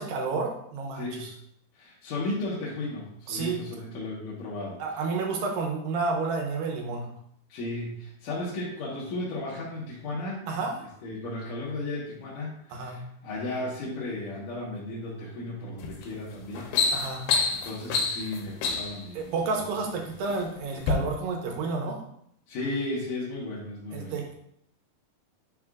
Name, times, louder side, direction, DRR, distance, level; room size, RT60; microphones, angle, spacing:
voice 1, 0.0-1.3 3.3-3.6 4.8-7.1 10.5-10.8 12.7-13.0 16.9-17.3 19.1-22.0 23.9-24.3, right 4 dB, 75° right, 2 dB, 2.6 m, -30 dB
voice 2, 1.0-1.3 1.8-4.8 7.5-10.5 11.0-16.7 17.5-19.4 22.5-24.2, left 2 dB, 65° left, -7 dB, 2.6 m, -35 dB
sound 1, 15.8-16.0 16.4-19.0 19.9-20.4 20.8-20.9, left 4 dB, 85° left, 2.8 m, -27 dB
9.7 x 4.8 x 2.4 m, 0.71 s
omnidirectional pair, 4.3 m